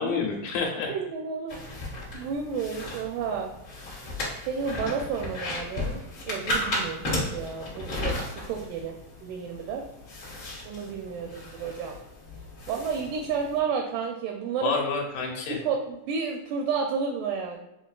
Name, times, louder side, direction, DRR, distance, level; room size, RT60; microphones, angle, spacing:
voice 1, 0.0-0.9 14.6-15.6, left 4 dB, 80° left, 1 dB, 2.4 m, -28 dB
voice 2, 0.9-3.5 4.5-8.2 8.4-8.9 9.2-9.8 10.7-12.0 12.7-14.8 15.5-17.6, right 6 dB, 80° right, 1 dB, 1.9 m, -31 dB
sound 1, 1.5-13.6, left 1 dB, 50° left, 1.5 m, -35 dB
6.7 x 2.4 x 2.4 m, 0.89 s
omnidirectional pair, 3.9 m